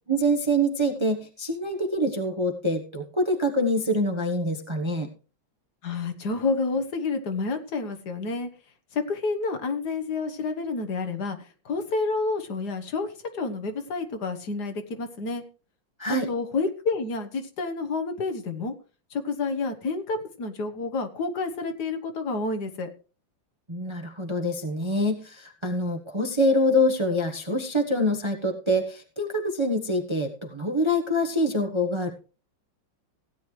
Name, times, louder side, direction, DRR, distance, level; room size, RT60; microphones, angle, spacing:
voice 1, 0.1-5.1 16.0-16.3 23.7-32.1, equal, 20° right, 4 dB, 0.9 m, -25 dB
voice 2, 5.8-8.5 8.9-11.4 11.6-13.1 13.3-15.4 16.3-18.7 19.1-22.9, left 3 dB, 60° left, 7 dB, 1.7 m, -29 dB
16.5 x 9.2 x 3.2 m, 0.36 s
omnidirectional pair, 2.0 m